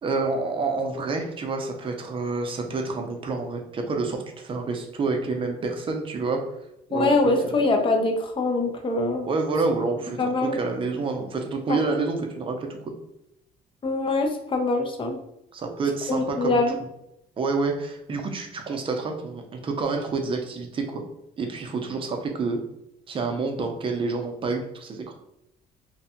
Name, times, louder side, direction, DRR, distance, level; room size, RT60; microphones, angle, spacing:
voice 1, 0.0-6.4 6.9-7.2 7.4-7.7 9.2-12.8 15.5-16.6 17.4-21.0 21.4-22.6 23.1-25.0, right 3 dB, 30° right, 4 dB, 0.5 m, -28 dB
voice 2, 6.9-9.3 10.2-10.6 11.7-11.8 13.8-15.2 16.1-16.8, left 2 dB, 30° left, 4 dB, 0.5 m, -23 dB
2.6 x 2.1 x 2.7 m, 0.81 s
cardioid pair, 110°, 17 cm